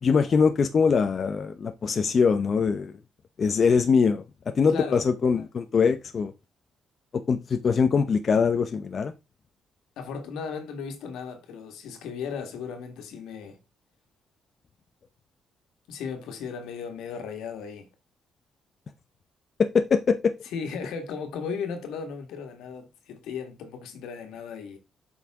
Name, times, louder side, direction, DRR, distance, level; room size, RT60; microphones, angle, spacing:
voice 1, 0.0-2.9 3.4-4.2 4.6-6.3 7.3-9.1 19.6-20.2, left 5 dB, 45° left, 0.8 m, -22 dB
voice 2, 4.7-5.1 10.0-13.6 15.9-17.9 20.5-24.8, left 6 dB, 85° left, 1.8 m, -36 dB
7.6 x 5.6 x 3.7 m
cardioid pair, 90°, 0 cm